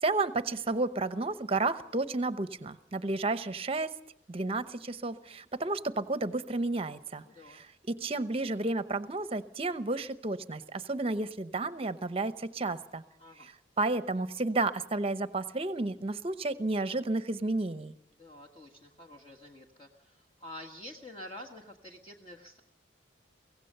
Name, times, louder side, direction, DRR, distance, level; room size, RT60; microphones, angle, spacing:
voice 1, 0.0-3.9 4.3-7.2 7.5-13.0 13.4-13.5 13.8-17.9, right 2 dB, 30° right, 12 dB, 0.8 m, -32 dB
voice 2, 7.2-7.6 13.2-13.5 18.2-22.6, left 1 dB, 30° left, 2 dB, 1.6 m, -48 dB
24.0 x 17.0 x 6.7 m, 0.75 s
head